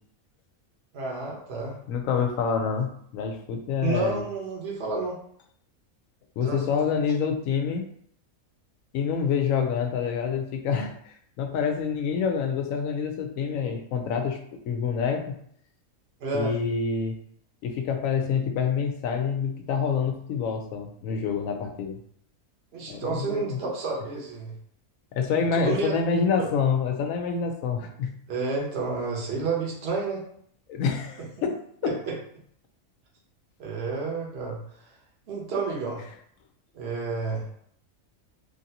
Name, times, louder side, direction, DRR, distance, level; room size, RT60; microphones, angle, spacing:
voice 1, 0.9-1.7 3.8-5.2 6.4-6.6 16.2-16.5 22.7-24.5 25.5-25.9 28.3-30.2 31.8-32.1 33.6-34.6 35.3-36.0 36.7-37.5, right 4 dB, 50° right, -3 dB, 1.0 m, -30 dB
voice 2, 1.9-4.2 6.4-7.9 8.9-14.4 14.7-15.4 16.3-17.1 17.6-22.0 22.9-23.6 25.1-28.1 30.7-31.9, left 6 dB, 75° left, 4 dB, 0.9 m, -27 dB
3.2 x 2.6 x 2.7 m, 0.66 s
omnidirectional pair, 1.5 m